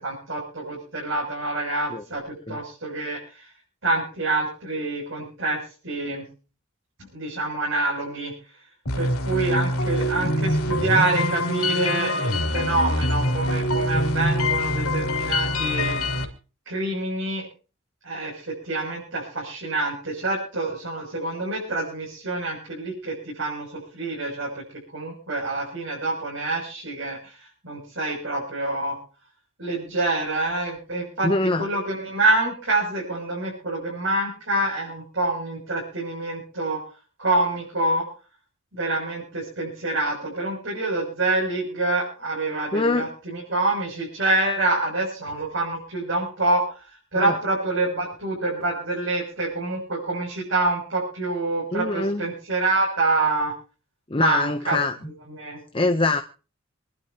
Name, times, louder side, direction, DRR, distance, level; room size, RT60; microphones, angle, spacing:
voice 1, 0.0-3.2 3.8-6.2 7.1-8.3 8.9-16.0 16.6-17.4 18.0-23.7 23.9-24.6 24.9-27.3 27.6-29.0 29.6-36.8 37.2-38.0 38.7-46.6 47.1-53.5 54.2-54.8 55.3-55.6, right 2 dB, 60° right, -4 dB, 6.7 m, -26 dB
sound 1, 8.9-16.2, left 1 dB, 90° left, 2.9 m, -24 dB
voice 2, 31.2-31.7 42.7-43.1 47.2-47.4 51.7-52.3 54.1-54.9 55.7-56.2, left 3 dB, 25° left, 6 dB, 0.7 m, -23 dB
27.0 x 11.5 x 2.9 m, 0.35 s
head